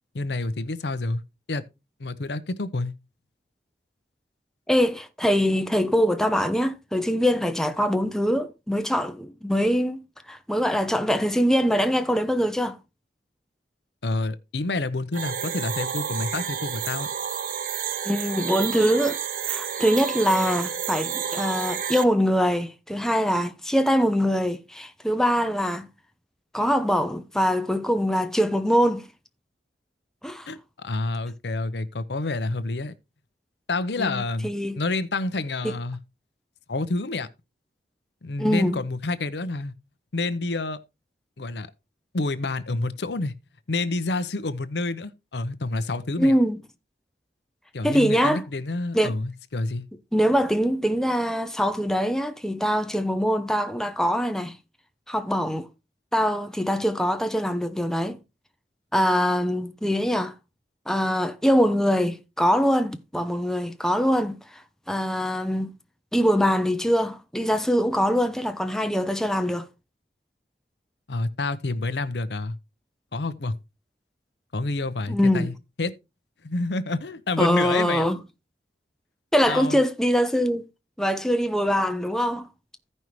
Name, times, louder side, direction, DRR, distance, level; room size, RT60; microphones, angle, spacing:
voice 1, 0.1-1.2 1.5-1.6 2.0-2.9 14.0-17.1 30.5-32.9 33.7-36.0 36.7-37.3 38.2-39.7 40.1-40.8 41.4-41.7 42.1-43.3 43.7-46.4 47.7-49.9 71.1-72.6 73.1-73.5 74.5-75.5 75.8-75.9 76.4-78.1 79.5-79.8, left 2 dB, 75° left, 0.7 m, -28 dB
voice 2, 4.7-12.8 18.0-19.2 19.5-25.9 26.5-29.1 30.2-30.5 34.0-34.8 35.6-35.7 38.4-38.8 46.2-46.6 47.8-48.4 48.9-49.1 50.1-54.6 55.1-55.7 56.1-58.2 58.9-60.3 60.9-65.7 66.1-69.7 75.1-75.5 77.4-78.2 79.3-80.6 81.0-82.5, equal, 5° left, 0.7 m, -23 dB
sound 1, 15.1-22.0, right 7 dB, 50° right, 0.5 m, -30 dB
15.0 x 5.4 x 3.1 m
head